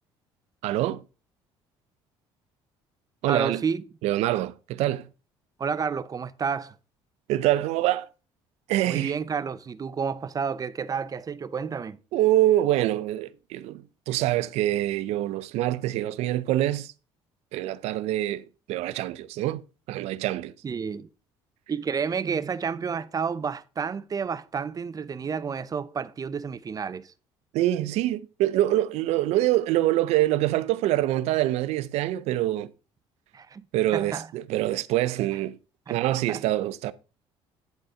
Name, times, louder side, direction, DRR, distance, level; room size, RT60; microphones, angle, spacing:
voice 1, 0.6-1.0 3.2-3.6 4.0-5.1 7.3-8.1 8.7-9.1 12.1-16.9 17.5-19.6 19.9-20.5 27.5-32.7 33.7-35.6 35.9-36.9, right 14 dB, 75° right, 0.6 m, -25 dB
voice 2, 3.2-3.8 5.6-6.8 8.9-12.0 20.6-21.1 21.7-27.1 33.3-33.6 33.9-34.3 35.9-36.0 36.3-36.4, right 6 dB, 35° right, 0.7 m, -30 dB
10.5 x 4.2 x 4.9 m
supercardioid pair, 85°, 11 cm